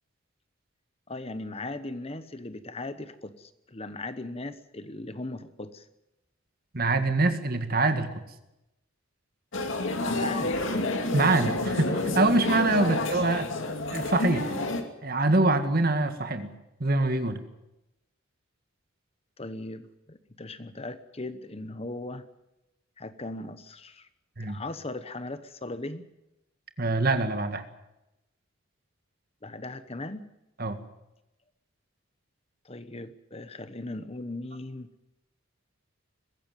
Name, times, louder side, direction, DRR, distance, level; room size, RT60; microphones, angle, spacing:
voice 1, 1.1-5.9 9.9-10.6 12.8-12.9 19.4-22.2 23.0-24.1 24.4-26.1 29.4-30.3 32.6-34.9, left 2 dB, 30° left, 12 dB, 1.0 m, -38 dB
voice 2, 6.7-8.1 11.1-13.5 13.9-14.5 15.0-16.5 16.8-17.4 24.4-24.6 26.8-27.6 30.6-30.8, right 2 dB, 45° right, 8 dB, 1.9 m, -24 dB
sound 1, 9.5-14.8, left 2 dB, 65° left, 2.4 m, -29 dB
22.5 x 15.5 x 9.1 m, 0.92 s
head